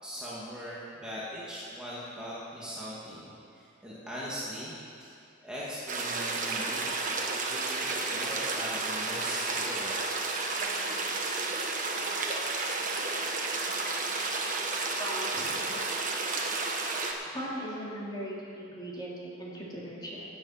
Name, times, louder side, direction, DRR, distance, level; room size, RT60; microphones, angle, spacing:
voice 1, 0.0-4.7 5.0-5.1 5.4-10.0, equal, 5° right, -9 dB, 2.1 m, -40 dB
sound 1, 5.9-17.1, right 3 dB, 40° right, 1.3 m, -32 dB
voice 2, 15.0-15.6 17.3-20.3, equal, 20° left, -6 dB, 2.9 m, -38 dB
16.5 x 8.6 x 5.8 m, 2.5 s
head